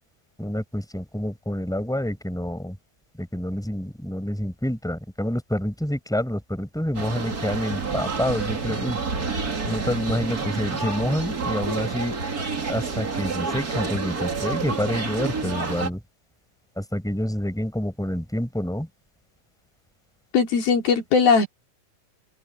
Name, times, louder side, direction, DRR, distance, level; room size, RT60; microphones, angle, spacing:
voice 1, 0.4-2.8 3.2-9.0 9.7-12.2 12.7-16.0 16.8-18.9, equal, ahead, 7.0 m, -28 dB
sound 1, 6.9-15.9, right 4 dB, 30° right, 2.3 m, -29 dB
voice 2, 20.3-21.5, left 5 dB, 90° left, 5.8 m, -19 dB
open air
omnidirectional pair, 4.1 m